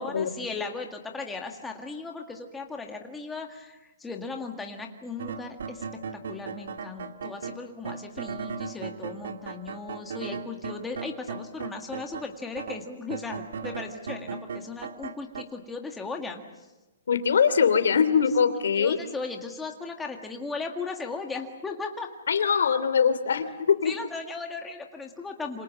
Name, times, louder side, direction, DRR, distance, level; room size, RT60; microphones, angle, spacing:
voice 1, 0.0-6.0 6.3-16.4 18.7-22.1 23.8-25.6, left 4 dB, 5° left, 2 dB, 1.9 m, -37 dB
sound 1, 5.2-12.3 12.6-15.4, right 5 dB, 65° right, 1.9 m, -36 dB
voice 2, 17.1-19.0 22.3-23.9, left 6 dB, 75° left, 12 dB, 2.9 m, -22 dB
27.5 x 26.5 x 7.4 m, 1.1 s
hypercardioid pair, 180°, 0 cm